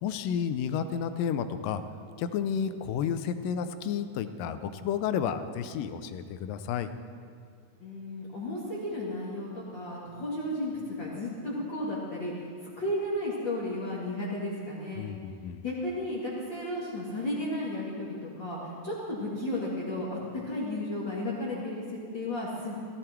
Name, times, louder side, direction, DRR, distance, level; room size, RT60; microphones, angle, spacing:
voice 1, 0.0-1.8 2.2-6.9 15.0-15.6, left 8 dB, 85° left, 10 dB, 2.3 m, -31 dB
voice 2, 7.8-12.5 12.8-15.1 15.6-20.2 20.4-22.8, left 1 dB, 40° left, -7 dB, 2.4 m, -33 dB
16.5 x 14.5 x 4.5 m, 2.2 s
omnidirectional pair, 3.9 m